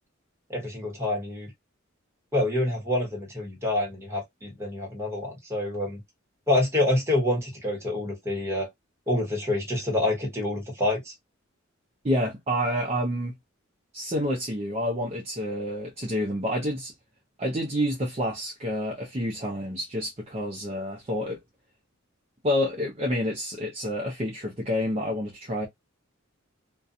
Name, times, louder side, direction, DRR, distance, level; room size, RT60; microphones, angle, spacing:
voice 1, 0.5-1.5 2.3-6.0 6.5-8.7 9.1-11.1, left 1 dB, 15° right, 1.1 m, -27 dB
voice 2, 12.0-13.3 13.9-16.9 17.4-21.4 22.4-25.7, equal, 30° right, 0.6 m, -28 dB
2.4 x 2.2 x 2.5 m
head